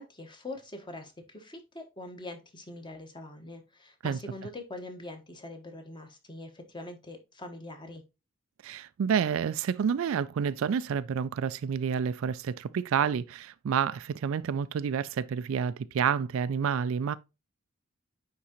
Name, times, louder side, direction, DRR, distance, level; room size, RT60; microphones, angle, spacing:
voice 1, 0.0-8.0, left 2 dB, 20° left, 1.2 m, -43 dB
voice 2, 8.6-17.2, right 7 dB, 65° right, 0.3 m, -29 dB
9.7 x 3.7 x 2.9 m
head